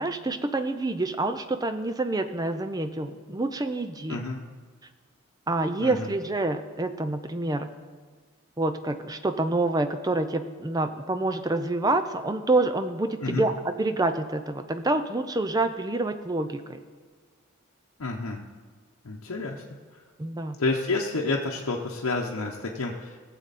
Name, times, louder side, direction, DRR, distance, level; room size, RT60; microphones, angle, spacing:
voice 1, 0.0-4.2 5.5-7.7 8.6-16.8 20.2-20.6, right 2 dB, 15° right, 9 dB, 0.4 m, -27 dB
voice 2, 5.8-6.1 13.2-13.5 18.0-18.5 19.0-19.6 20.6-23.2, left 3 dB, 85° left, -2 dB, 0.9 m, -29 dB
18.0 x 7.5 x 4.1 m, 1.5 s
head